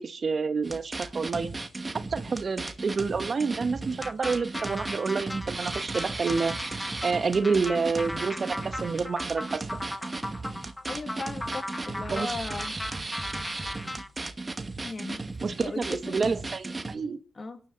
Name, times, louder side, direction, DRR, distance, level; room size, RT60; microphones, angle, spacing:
voice 1, 0.0-1.5 2.1-6.6 7.0-9.6 12.1-12.3 15.4-17.2, right 4 dB, 50° right, 1.5 m, -28 dB
sound 1, 0.6-16.9, right 3 dB, 30° right, 2.2 m, -36 dB
sound 2, 4.0-14.1, left 1 dB, 15° left, 1.5 m, -38 dB
voice 2, 10.9-12.8 14.8-15.2 15.6-16.3 17.4-17.6, left 3 dB, 40° left, 2.6 m, -37 dB
25.0 x 11.5 x 4.2 m
supercardioid pair, 50°, 0 cm